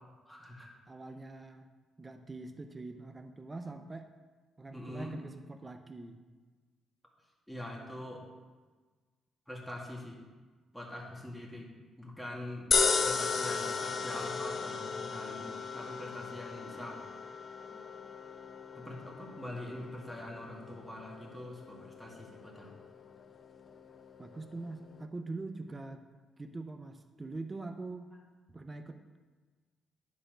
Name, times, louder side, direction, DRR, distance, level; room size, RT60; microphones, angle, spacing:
voice 1, 0.3-0.7 4.7-5.2 7.5-8.2 9.5-10.2 10.7-11.7 12.0-17.1 17.7-17.8 18.7-22.8, left 1 dB, ahead, -2 dB, 2.0 m, -44 dB
voice 2, 0.9-1.7 2.0-4.1 4.6-6.2 24.2-26.0 26.4-28.1 28.5-29.2, right 3 dB, 25° right, 7 dB, 0.6 m, -43 dB
sound 1, 12.7-25.0, left 5 dB, 45° left, 0.7 m, -36 dB
10.0 x 4.2 x 6.4 m, 1.4 s
cardioid pair, 90°, 0 cm